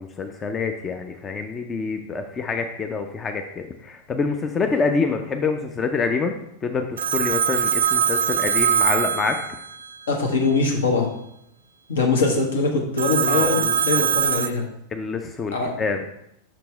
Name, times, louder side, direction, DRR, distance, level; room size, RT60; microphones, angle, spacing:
voice 1, 0.0-6.3 6.6-9.4 13.3-13.8 14.9-16.0, left 4 dB, 20° left, 5 dB, 0.5 m, -26 dB
Telephone, 7.0-10.0 13.0-14.5, right 8 dB, 65° right, 0.4 m, -22 dB
voice 2, 10.1-11.1 11.9-14.7 15.5-15.7, left 3 dB, 65° left, 1 dB, 1.2 m, -22 dB
6.1 x 5.9 x 3.4 m, 0.77 s
figure-of-eight pair, 90°, 0 cm